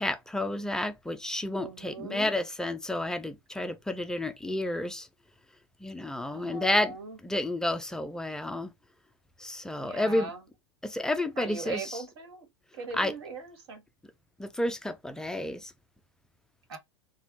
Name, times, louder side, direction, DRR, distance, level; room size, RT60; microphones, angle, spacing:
voice 1, 0.0-5.1 5.8-7.0 7.2-8.7 9.4-10.3 10.8-12.0 13.0-13.1 14.4-15.7, left 1 dB, 5° left, 0.3 m, -30 dB
voice 2, 1.6-2.3 6.3-7.2 9.8-10.4 11.4-12.5 12.7-13.8 16.7-16.8, right 4 dB, 60° right, 1.4 m, -40 dB
3.4 x 2.2 x 3.4 m
figure-of-eight pair, 95°, 15 cm